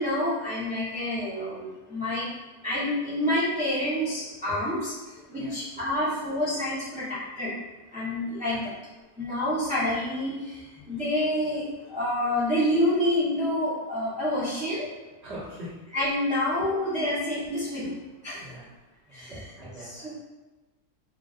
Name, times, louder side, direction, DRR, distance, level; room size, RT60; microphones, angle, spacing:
voice 1, 0.0-2.3 2.6-7.5 7.9-8.6 9.2-14.9 15.9-17.9 18.2-18.4 19.1-19.3 19.8-20.1, left 1 dB, 5° right, -12 dB, 0.6 m, -28 dB
voice 2, 15.2-15.7 18.4-18.7 19.1-20.1, equal, 45° right, -11 dB, 1.6 m, -42 dB
3.8 x 2.5 x 2.4 m, 1.2 s
omnidirectional pair, 1.6 m